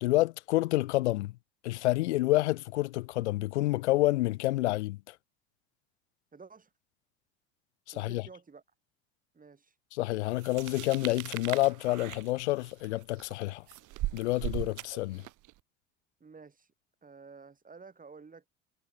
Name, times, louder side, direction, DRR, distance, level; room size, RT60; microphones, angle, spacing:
voice 1, 0.0-1.3 1.6-5.0 8.0-8.2 9.9-13.6 14.1-15.2, left 18 dB, 85° left, 0.6 m, -28 dB
voice 2, 6.3-6.7 7.9-8.6 9.3-9.7 16.2-16.7 17.0-18.5, right 4 dB, 25° right, 4.1 m, -51 dB
sound 1, 10.4-15.5, right 18 dB, 60° right, 3.1 m, -39 dB
hypercardioid pair, 70°, 34 cm